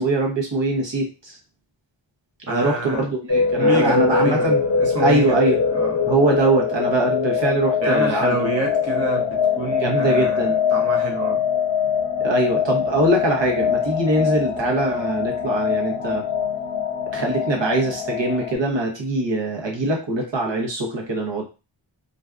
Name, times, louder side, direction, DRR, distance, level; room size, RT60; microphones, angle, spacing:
voice 1, 0.0-1.4 2.5-4.6 5.0-5.6 6.1-8.5 9.8-10.6 12.2-16.2 17.1-21.4, right 2 dB, 60° right, 0 dB, 0.9 m, -22 dB
voice 2, 2.5-3.1 3.6-5.4 5.7-6.0 7.8-9.3 9.6-11.4, right 3 dB, 30° right, 0 dB, 0.7 m, -27 dB
sound 1, 3.3-18.5, left 6 dB, 55° left, 0.7 m, -22 dB
2.5 x 2.2 x 2.3 m, 0.31 s
wide cardioid pair, 45°, 48 cm